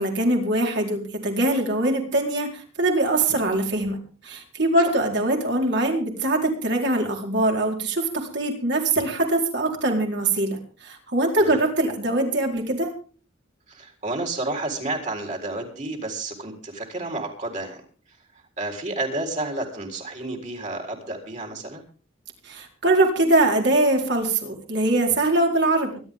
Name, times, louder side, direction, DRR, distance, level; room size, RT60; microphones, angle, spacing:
voice 1, 0.0-12.9 22.4-26.0, right 2 dB, 55° right, 1 dB, 4.3 m, -22 dB
voice 2, 13.7-17.8 18.6-21.8, right 2 dB, 35° right, 3 dB, 3.9 m, -31 dB
24.5 x 12.0 x 3.7 m, 0.40 s
head